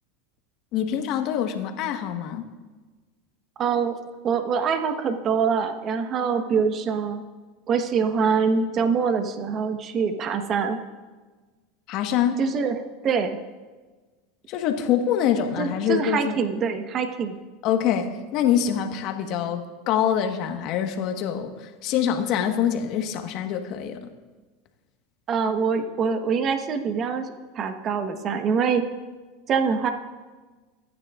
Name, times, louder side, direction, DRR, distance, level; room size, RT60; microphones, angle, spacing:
voice 1, 0.7-2.5 11.9-12.4 14.5-16.4 17.6-24.1, left 9 dB, 55° left, 5 dB, 1.4 m, -25 dB
voice 2, 3.6-4.0 4.2-7.2 7.7-10.8 12.4-12.7 13.0-13.4 15.6-17.4 25.3-28.8 29.5-29.9, right 6 dB, 40° right, 7 dB, 1.2 m, -24 dB
24.0 x 9.7 x 2.5 m, 1.3 s
hypercardioid pair, 100°, 0 cm